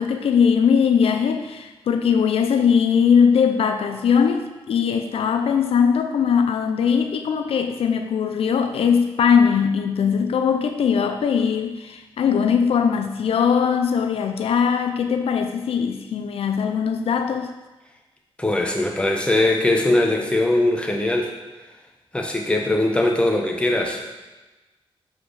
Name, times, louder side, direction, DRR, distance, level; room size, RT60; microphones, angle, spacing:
voice 1, 0.0-17.5, left 7 dB, 90° left, 6 dB, 0.5 m, -20 dB
voice 2, 18.4-21.3 22.1-24.0, left 2 dB, 10° left, 1 dB, 1.3 m, -21 dB
6.9 x 5.0 x 4.8 m, 1.1 s
cardioid pair, 75°, 10 cm